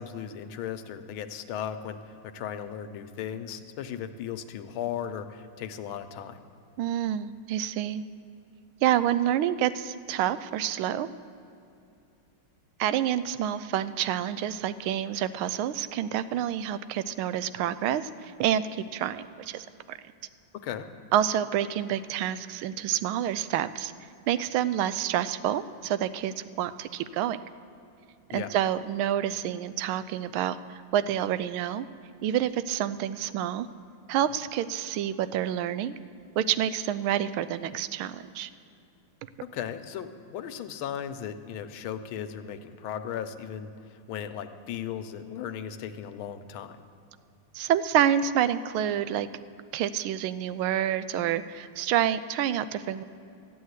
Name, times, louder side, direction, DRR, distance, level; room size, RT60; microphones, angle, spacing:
voice 1, 0.0-6.4 20.5-20.9 28.3-28.5 39.5-46.8, left 9 dB, 90° left, 9 dB, 1.5 m, -36 dB
voice 2, 6.8-8.0 8.8-11.1 12.8-20.0 21.1-23.9 24.3-27.4 28.3-31.9 32.2-33.7 34.1-35.9 36.4-38.5 47.5-49.3 49.7-53.0, right 10 dB, 85° right, 14 dB, 1.4 m, -28 dB
13.5 x 9.3 x 8.1 m, 2.6 s
omnidirectional pair, 2.2 m